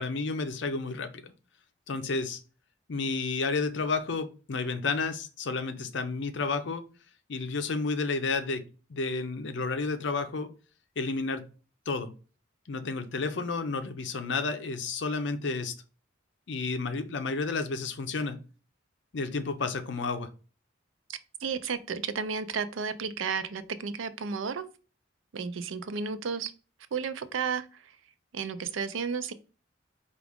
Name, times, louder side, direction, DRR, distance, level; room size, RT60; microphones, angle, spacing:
voice 1, 0.0-1.3 1.9-2.4 2.9-6.9 7.3-8.6 8.9-10.5 11.0-11.4 11.9-12.1 12.7-15.7 16.5-18.4 19.1-20.3, left 4 dB, 65° left, 0.6 m, -31 dB
voice 2, 21.1-24.6 25.3-26.5 26.9-27.9 28.3-29.3, right 5 dB, 90° right, 0.5 m, -33 dB
4.7 x 2.4 x 3.5 m
head